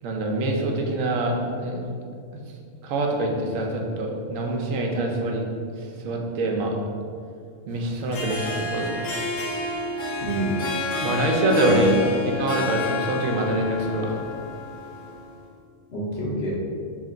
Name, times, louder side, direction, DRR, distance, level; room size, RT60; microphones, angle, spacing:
voice 1, 0.0-1.9 2.8-5.4 6.0-6.8 7.7-9.1 11.0-11.9 12.3-14.2, right 1 dB, 85° right, 1 dB, 1.0 m, -25 dB
Harp, 7.9-15.3, left 3 dB, 85° left, 1.1 m, -29 dB
voice 2, 10.2-10.5 11.6-12.5 15.9-16.5, right 2 dB, 60° left, -4 dB, 0.9 m, -27 dB
3.2 x 2.9 x 3.8 m, 2.3 s
omnidirectional pair, 1.3 m